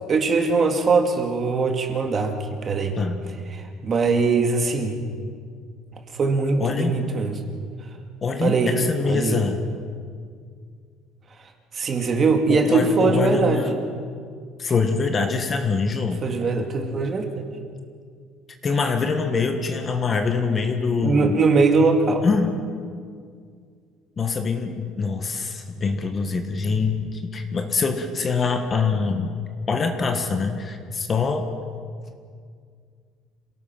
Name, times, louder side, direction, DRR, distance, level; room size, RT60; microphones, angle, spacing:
voice 1, 0.1-3.0 3.5-5.0 5.9-7.4 8.4-8.7 9.0-9.4 11.7-13.7 16.2-17.6 21.0-22.2, right 4 dB, 30° right, 4 dB, 2.2 m, -21 dB
voice 2, 6.6-7.0 8.2-9.6 12.5-13.7 14.6-16.2 18.6-21.4 22.2-22.5 24.2-29.4 29.7-31.5, left 4 dB, 25° left, 6 dB, 1.6 m, -24 dB
27.0 x 18.0 x 6.0 m, 2.1 s
cardioid pair, 150°, 0 cm